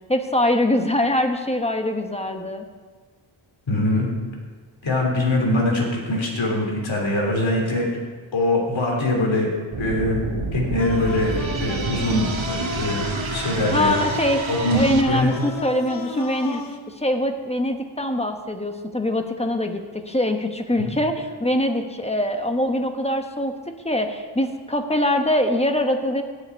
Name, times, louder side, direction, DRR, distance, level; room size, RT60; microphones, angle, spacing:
voice 1, 0.1-2.6 13.7-14.4 14.7-16.6 16.9-23.5 23.8-26.2, left 1 dB, 15° left, 5 dB, 1.2 m, -23 dB
voice 2, 3.7-4.1 4.8-7.9 8.3-9.5 9.8-10.2 10.5-11.3 11.6-13.9 14.5-15.3 20.8-20.9, left 1 dB, 70° left, -1 dB, 3.3 m, -23 dB
sound 1, 9.7-15.0, right 4 dB, 80° right, 1.3 m, -28 dB
sound 2, 10.8-16.8, left 3 dB, 45° left, 1.2 m, -34 dB
17.5 x 6.9 x 4.7 m, 1.5 s
wide cardioid pair, 65°, 47 cm